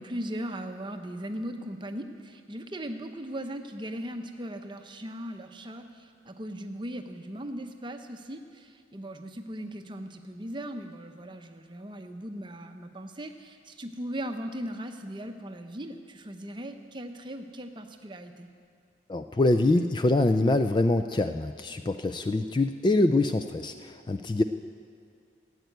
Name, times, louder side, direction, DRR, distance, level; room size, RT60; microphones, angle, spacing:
voice 1, 0.0-18.5 24.4-24.5, right 1 dB, 25° right, 6 dB, 0.7 m, -38 dB
voice 2, 19.1-24.4, left 2 dB, 25° left, 8 dB, 0.3 m, -24 dB
13.5 x 8.2 x 9.3 m, 2.2 s
head